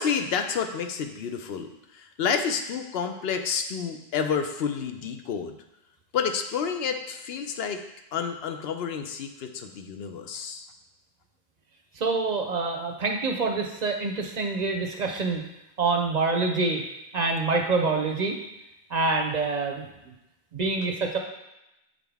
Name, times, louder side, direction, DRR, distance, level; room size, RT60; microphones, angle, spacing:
voice 1, 0.0-5.5 6.1-7.8 8.1-10.7, left 6 dB, 80° left, 6 dB, 0.8 m, -29 dB
voice 2, 12.0-15.4 15.8-16.8 17.1-18.4 18.9-20.1 20.5-21.2, right 3 dB, 50° right, 2 dB, 0.6 m, -26 dB
7.3 x 3.8 x 3.4 m, 0.91 s
omnidirectional pair, 1.0 m